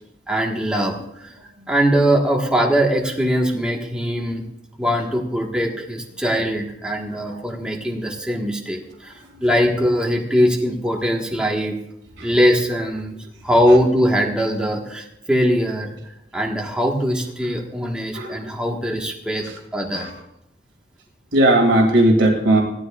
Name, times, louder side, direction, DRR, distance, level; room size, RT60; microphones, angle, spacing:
voice 1, 0.3-1.4 1.7-4.4 4.8-11.8 12.2-13.2 13.4-16.0 16.3-20.1, equal, 5° right, -1 dB, 1.5 m, -21 dB
voice 2, 21.3-22.6, right 1 dB, 85° right, 2 dB, 2.5 m, -17 dB
17.5 x 13.0 x 2.4 m, 0.82 s
head